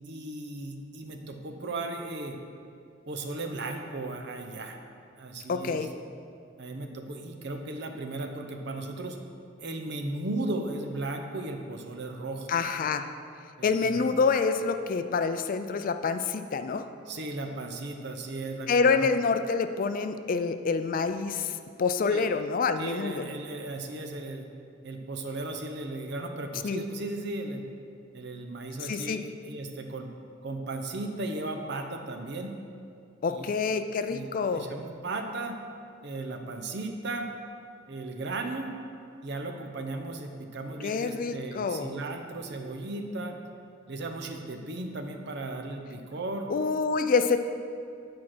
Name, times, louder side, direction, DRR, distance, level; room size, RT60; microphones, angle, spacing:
voice 1, 0.0-2.4 3.1-4.8 5.2-5.9 6.6-9.2 9.6-12.5 13.6-14.0 17.1-19.1 22.1-22.3 22.8-24.4 24.8-27.6 28.1-30.1 30.4-32.6 33.3-33.5 34.1-35.6 36.0-37.3 37.9-38.7 39.2-43.4 43.9-46.5, right 2 dB, 60° right, 4 dB, 0.7 m, -36 dB
voice 2, 5.5-5.9 12.5-13.1 13.6-16.8 18.7-23.2 26.6-26.8 28.8-29.2 33.2-34.7 40.8-41.9 46.5-47.4, left 4 dB, 45° left, 9 dB, 0.4 m, -27 dB
8.6 x 4.7 x 6.0 m, 2.4 s
head